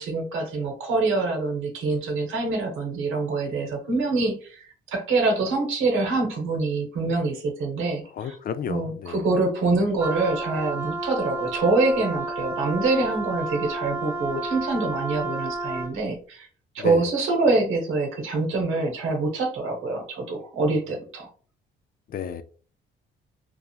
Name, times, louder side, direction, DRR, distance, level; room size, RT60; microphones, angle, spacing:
voice 1, 0.0-8.3 8.7-16.5 16.7-21.3, right 3 dB, 90° right, 2 dB, 1.0 m, -25 dB
voice 2, 8.1-9.2 16.8-17.0 22.1-22.4, left 8 dB, 50° left, 11 dB, 0.4 m, -32 dB
Wind instrument woodwind instrument, 10.0-16.0, right 2 dB, 15° right, 0.8 m, -31 dB
2.9 x 2.3 x 2.4 m, 0.41 s
cardioid pair, 90°, 20 cm